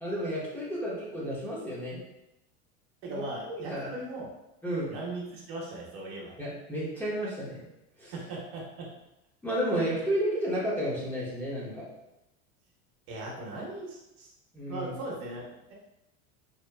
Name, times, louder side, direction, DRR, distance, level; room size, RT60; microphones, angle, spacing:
voice 1, 0.0-2.0 3.1-3.9 4.6-4.9 6.4-7.7 8.0-8.1 9.4-11.8 14.5-14.9, equal, 5° left, -8 dB, 0.8 m, -32 dB
voice 2, 3.0-4.3 4.9-6.3 8.1-8.9 13.1-14.3 14.7-15.7, right 2 dB, 60° right, -3 dB, 0.9 m, -39 dB
2.9 x 2.2 x 2.2 m, 0.90 s
supercardioid pair, 110°, 33 cm